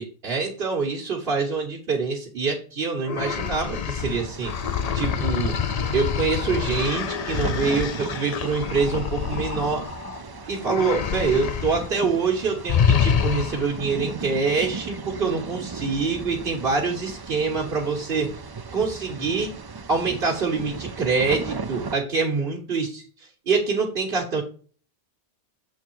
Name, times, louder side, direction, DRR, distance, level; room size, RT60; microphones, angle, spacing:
voice 1, 0.0-4.5 4.9-5.6 5.9-9.8 10.5-18.3 18.7-19.5 19.9-23.0 23.5-24.4, right 4 dB, 60° right, 0 dB, 1.5 m, -25 dB
sound 1, 3.0-10.2 10.6-11.9 12.1-12.3 12.7-13.8, left 7 dB, 50° left, 0.5 m, -26 dB
sound 2, 4.0-21.9, right 4 dB, 35° right, 0.4 m, -36 dB
7.1 x 3.7 x 4.6 m, 0.40 s
omnidirectional pair, 1.1 m